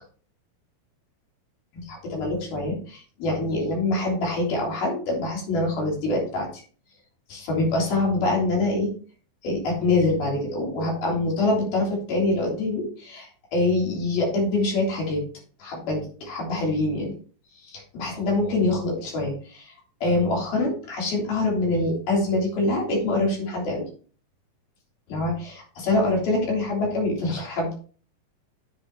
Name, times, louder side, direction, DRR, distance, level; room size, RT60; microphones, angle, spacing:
voice 1, 1.7-6.6 7.3-8.9 9.4-15.2 15.6-17.1 17.6-19.8 20.0-23.9 25.1-27.7, left 2 dB, 90° left, -2 dB, 5.3 m, -25 dB
9.8 x 8.5 x 3.0 m, 0.41 s
omnidirectional pair, 4.2 m